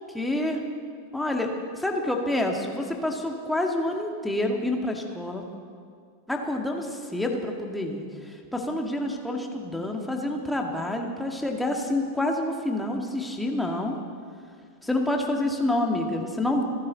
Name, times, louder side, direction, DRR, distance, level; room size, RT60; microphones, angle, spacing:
voice 1, 0.1-0.6 1.1-1.5 1.8-5.4 6.3-14.0 14.8-16.6, left 1 dB, 5° left, 1 dB, 1.9 m, -28 dB
28.0 x 10.5 x 4.0 m, 2.1 s
figure-of-eight pair, 90°, 0 cm